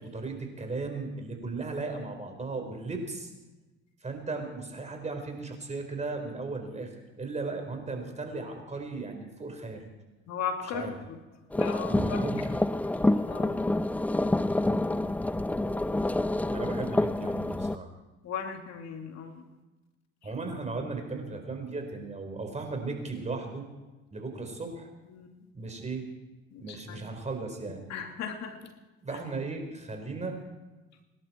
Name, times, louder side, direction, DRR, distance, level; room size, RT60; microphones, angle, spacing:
voice 1, 0.0-3.3 4.0-9.8 10.7-10.9 11.9-12.4 16.5-17.9 20.2-23.6 24.1-24.9 25.5-26.0 26.6-27.9 29.0-30.4, right 3 dB, 25° right, 4 dB, 4.5 m, -36 dB
voice 2, 10.3-11.2 11.6-12.3 13.3-13.5 18.2-19.4 25.1-25.3 26.5-27.0 27.9-28.7, left 6 dB, 60° left, 4 dB, 2.5 m, -37 dB
sound 1, 11.5-17.8, left 2 dB, 5° left, 0.4 m, -27 dB
26.5 x 12.0 x 4.5 m, 1.1 s
supercardioid pair, 90°, 30 cm